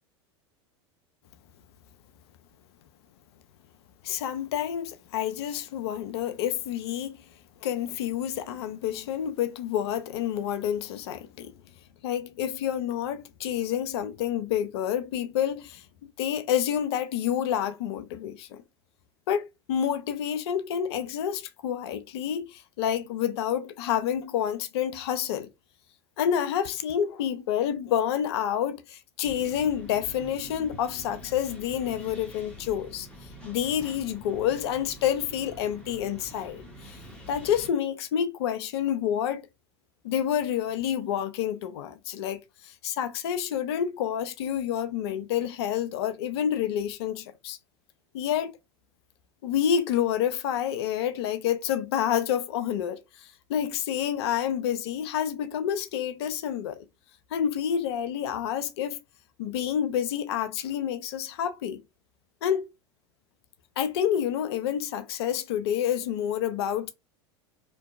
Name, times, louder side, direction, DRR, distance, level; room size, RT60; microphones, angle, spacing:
voice 1, 4.0-7.2 7.6-11.5 12.0-15.8 16.2-18.6 19.3-25.5 26.2-33.1 33.4-37.0 37.3-39.4 40.0-47.6 48.1-48.5 49.4-56.8 57.3-59.0 59.4-61.8 62.4-62.7 63.8-66.9, left 9 dB, 65° left, 0.4 m, -28 dB
sound 1, 29.2-37.7, equal, 5° left, 1.0 m, -45 dB
2.6 x 2.1 x 2.3 m
hypercardioid pair, 80°, 14 cm